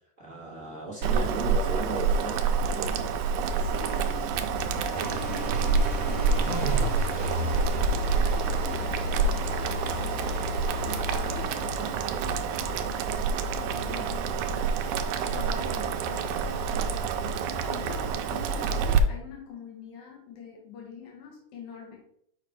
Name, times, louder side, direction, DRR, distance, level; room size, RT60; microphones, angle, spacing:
voice 1, 0.2-2.4 2.7-2.9, right 2 dB, 40° right, -7 dB, 1.1 m, -35 dB
Boiling, 1.0-19.0, right 5 dB, 85° right, 2.0 m, -27 dB
voice 2, 3.5-4.4 4.7-10.4 10.9-13.1 13.6-14.8 15.3-17.0 17.7-22.0, left 6 dB, 75° left, -2 dB, 2.6 m, -45 dB
sound 1, 4.9-11.5, left 3 dB, 40° left, 3.0 m, -34 dB
6.5 x 4.9 x 3.4 m, 0.69 s
omnidirectional pair, 3.5 m